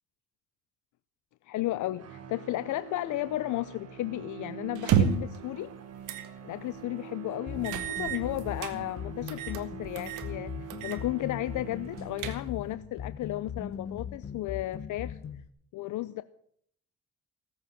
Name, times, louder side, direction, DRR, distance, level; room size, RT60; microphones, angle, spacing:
voice 1, 1.5-5.7 6.4-15.2 15.7-16.2, left 16 dB, 75° left, 0.6 m, -34 dB
sound 1, 1.9-12.7, right 9 dB, 55° right, 1.8 m, -45 dB
sound 2, 4.8-5.4 6.1-6.3 6.7-6.8 7.6-8.8 9.3-9.6 10.0-10.3 10.7-11.0 11.3-11.4 11.9-12.7, right 8 dB, 80° right, 1.7 m, -30 dB
sound 3, 7.5-15.5, left 7 dB, 45° left, 1.2 m, -40 dB
17.5 x 8.0 x 8.8 m
cardioid pair, 90°, 30 cm